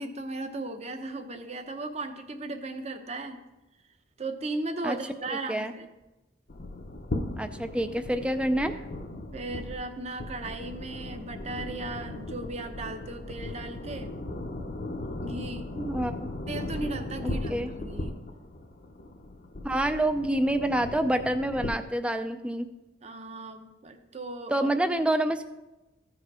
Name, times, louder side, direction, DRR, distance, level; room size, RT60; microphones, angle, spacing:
voice 1, 0.0-3.4 4.2-5.9 9.3-14.1 15.2-15.7 16.5-18.2 23.0-24.7, right 2 dB, 35° right, 7 dB, 0.8 m, -36 dB
voice 2, 5.3-5.7 7.4-8.8 15.8-16.3 17.5-17.7 19.6-22.7 24.5-25.4, right 1 dB, 5° right, 8 dB, 0.4 m, -27 dB
sound 1, 6.5-21.7, left 2 dB, 55° left, 0.7 m, -37 dB
14.0 x 4.9 x 4.8 m, 1.0 s
head